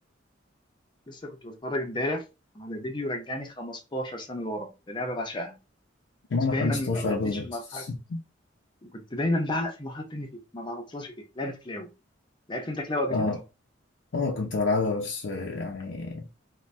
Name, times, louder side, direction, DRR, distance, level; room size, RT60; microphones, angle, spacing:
voice 1, 1.1-2.2 2.6-5.6 6.5-7.8 8.8-11.9 12.5-13.3, left 1 dB, 25° left, 0.5 m, -32 dB
voice 2, 6.3-8.2 13.1-13.4 14.1-16.4, left 3 dB, 75° left, 0.5 m, -29 dB
2.5 x 2.1 x 3.2 m
head